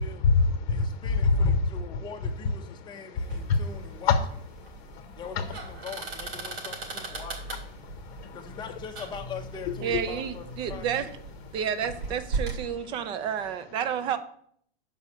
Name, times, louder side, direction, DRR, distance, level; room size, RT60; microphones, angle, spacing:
voice 1, 0.0-1.6 2.8-3.6 4.1-4.2 4.7-5.5 7.8-8.5 9.9-10.0, left 4 dB, 50° left, 6 dB, 0.8 m, -26 dB
voice 2, 0.7-4.2 5.2-7.5 8.3-11.1, left 5 dB, 15° left, 3 dB, 0.8 m, -42 dB
sound 1, 3.2-12.6, right 3 dB, 90° right, 3.0 m, -38 dB
voice 3, 9.8-11.1 11.5-14.2, right 8 dB, 15° right, 11 dB, 0.3 m, -30 dB
7.2 x 5.4 x 6.2 m, 0.65 s
supercardioid pair, 155°, 32 cm